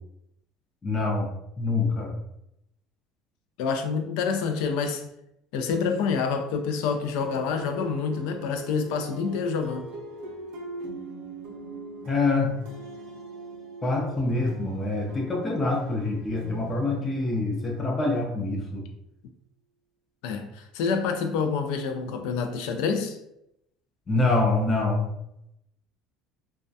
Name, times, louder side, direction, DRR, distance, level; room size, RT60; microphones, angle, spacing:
voice 1, 0.8-1.3 1.6-2.2 12.0-12.7 13.8-18.9 24.1-25.1, left 3 dB, 20° left, 0.5 m, -25 dB
voice 2, 3.6-5.1 5.5-9.9 20.2-23.2, left 5 dB, 80° left, 0.4 m, -27 dB
sound 1, 7.2-18.3, right 2 dB, 75° right, 0.6 m, -41 dB
2.3 x 2.1 x 2.6 m
cardioid pair, 130°, 0 cm